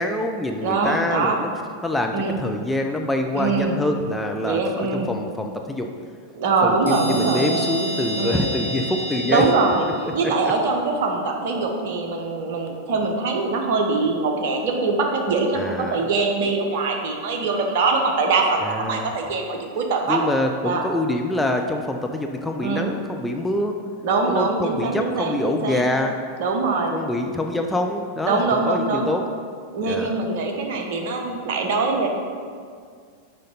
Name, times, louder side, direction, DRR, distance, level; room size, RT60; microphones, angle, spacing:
voice 1, 0.0-1.5 1.8-5.9 6.6-9.4 15.5-16.0 18.6-19.1 20.1-23.8 24.3-26.1 26.9-29.2 29.9-30.2, left 1 dB, 5° left, 3 dB, 0.5 m, -25 dB
voice 2, 0.6-1.4 2.1-2.4 3.3-3.8 4.4-5.1 6.4-7.5 8.1-8.5 9.2-9.9 10.1-20.2 20.6-20.8 22.6-22.9 24.0-25.9 26.4-26.9 28.2-29.1 29.7-32.1, right 3 dB, 50° right, 2 dB, 1.0 m, -23 dB
sound 1, 6.8-10.4, right 1 dB, 75° right, 1.3 m, -29 dB
6.5 x 5.1 x 5.5 m, 2.1 s
figure-of-eight pair, 90°, 0 cm